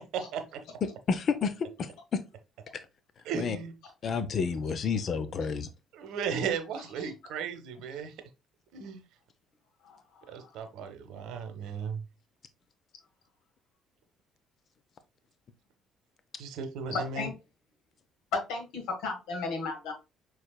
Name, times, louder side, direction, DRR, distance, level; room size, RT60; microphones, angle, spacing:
voice 1, 0.1-0.6 3.2-3.7 5.9-8.1 8.7-9.0 10.3-12.0 16.4-17.3, right 6 dB, 65° right, 0.8 m, -35 dB
voice 2, 0.8-2.2 3.3-3.6 4.0-5.7, left 5 dB, 50° left, 0.5 m, -30 dB
voice 3, 16.9-17.3 18.3-19.9, left 4 dB, 70° left, 1.4 m, -34 dB
6.3 x 3.2 x 2.2 m
hypercardioid pair, 50°, 0 cm